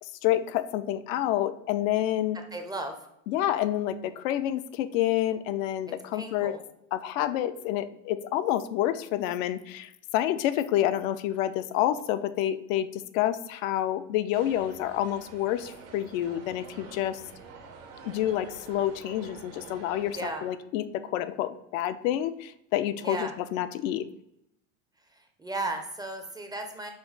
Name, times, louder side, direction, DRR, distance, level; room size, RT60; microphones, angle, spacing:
voice 1, 0.0-2.4 3.3-6.5 6.9-17.2 18.0-24.0, left 12 dB, 75° left, 12 dB, 0.5 m, -28 dB
voice 2, 2.5-3.0 6.1-6.6 20.1-20.4 23.0-23.3 25.1-26.9, right 2 dB, 10° right, 4 dB, 0.4 m, -35 dB
sound 1, 14.3-20.5, right 4 dB, 80° right, 1.2 m, -47 dB
5.9 x 2.2 x 3.9 m, 0.80 s
supercardioid pair, 100°, 41 cm